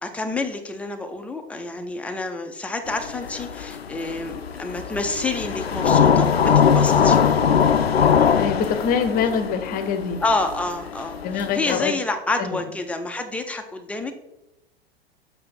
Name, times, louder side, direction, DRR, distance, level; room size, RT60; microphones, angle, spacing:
voice 1, 0.0-7.2 10.2-14.1, left 3 dB, 5° left, 5 dB, 0.5 m, -28 dB
sound 1, 2.9-11.7, left 7 dB, 85° left, 0.5 m, -21 dB
voice 2, 8.3-10.2 11.2-12.0 12.4-12.6, left 6 dB, 30° left, 8 dB, 0.8 m, -24 dB
7.5 x 2.8 x 5.6 m, 0.93 s
figure-of-eight pair, 95°, 30 cm